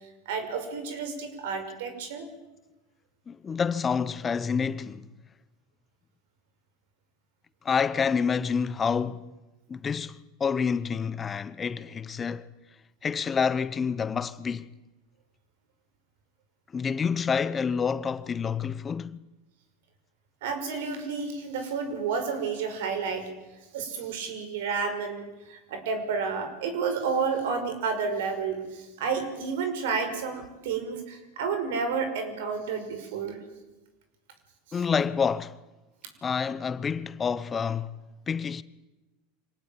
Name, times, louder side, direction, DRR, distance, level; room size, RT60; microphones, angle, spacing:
voice 1, 0.3-2.3 20.4-23.3 23.7-33.4, right 5 dB, 75° right, 5.8 m, -31 dB
voice 2, 3.3-5.1 7.6-9.3 9.7-12.5 13.0-14.7 16.7-19.2 34.7-35.6 36.2-37.9 38.3-38.6, left 6 dB, 25° left, 1.0 m, -28 dB
25.5 x 19.0 x 9.2 m
hypercardioid pair, 100°, 0 cm